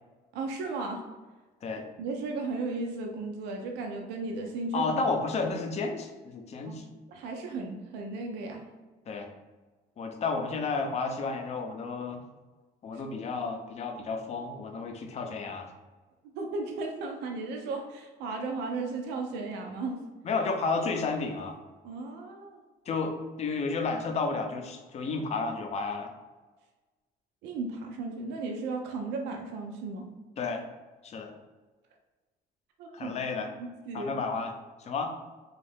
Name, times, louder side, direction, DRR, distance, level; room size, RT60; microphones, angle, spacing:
voice 1, 0.3-1.0 2.0-4.9 6.7-6.8 7.1-8.6 12.9-13.2 16.3-20.0 21.8-22.6 27.4-30.1 32.8-33.2 33.6-34.1, right 3 dB, 90° right, 2 dB, 0.4 m, -35 dB
voice 2, 4.7-6.9 9.1-9.3 10.0-12.2 12.8-15.7 20.2-21.6 22.9-26.1 30.4-30.6 31.0-31.3 32.9-33.5 33.9-34.5 34.8-35.1, left 4 dB, 40° left, 4 dB, 0.5 m, -32 dB
2.6 x 2.4 x 3.4 m, 1.3 s
cardioid pair, 110°, 17 cm